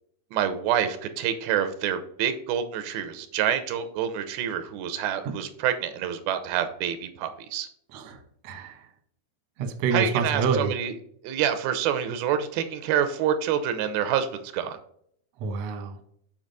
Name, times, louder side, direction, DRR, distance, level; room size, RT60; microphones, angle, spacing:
voice 1, 0.3-7.7 9.9-11.0 11.2-14.3 14.5-14.8, right 9 dB, 90° right, 9 dB, 2.5 m, -27 dB
voice 2, 8.4-8.9 9.6-10.7 15.4-16.0, right 5 dB, 65° right, 6 dB, 1.6 m, -27 dB
7.3 x 5.1 x 4.0 m, 0.67 s
omnidirectional pair, 4.4 m